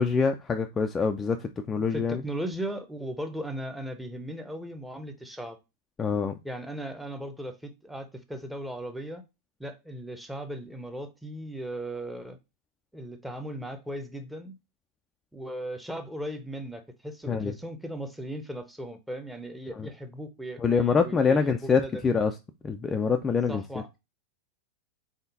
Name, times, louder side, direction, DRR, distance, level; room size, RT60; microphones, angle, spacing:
voice 1, 0.0-2.2 6.0-6.3 17.3-17.5 19.8-19.9 20.6-22.3 22.6-23.6, left 5 dB, 20° left, 0.3 m, -25 dB
voice 2, 1.9-5.6 6.4-9.2 9.6-12.4 12.9-14.5 15.3-21.9 23.5-23.9, right 1 dB, 5° right, 0.7 m, -37 dB
3.9 x 3.6 x 2.6 m
figure-of-eight pair, 90°, 0 cm